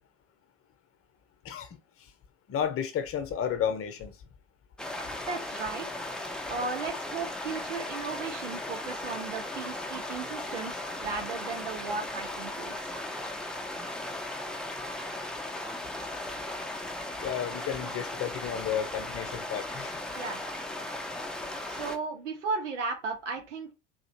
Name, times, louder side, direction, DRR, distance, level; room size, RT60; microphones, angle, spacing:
voice 1, 1.4-1.8 2.5-4.1 17.2-20.3, left 8 dB, 40° left, 0.8 m, -32 dB
sound 1, 4.8-22.0, left 1 dB, ahead, 0.7 m, -37 dB
voice 2, 5.3-5.9 6.4-13.0 20.2-20.4 21.0-21.1 21.7-23.7, right 4 dB, 75° right, 1.3 m, -35 dB
3.9 x 2.7 x 2.8 m
hypercardioid pair, 70°, 36 cm